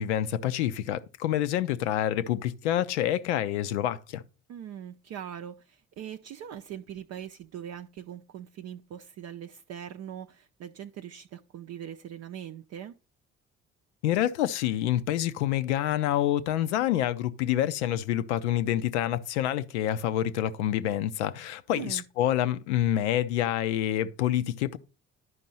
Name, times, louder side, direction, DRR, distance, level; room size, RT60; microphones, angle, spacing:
voice 1, 0.0-4.2 14.0-24.8, left 12 dB, 80° left, 0.6 m, -27 dB
voice 2, 4.5-13.0 21.7-22.0, right 10 dB, 50° right, 0.5 m, -41 dB
11.0 x 5.2 x 4.1 m
figure-of-eight pair, 45°, 34 cm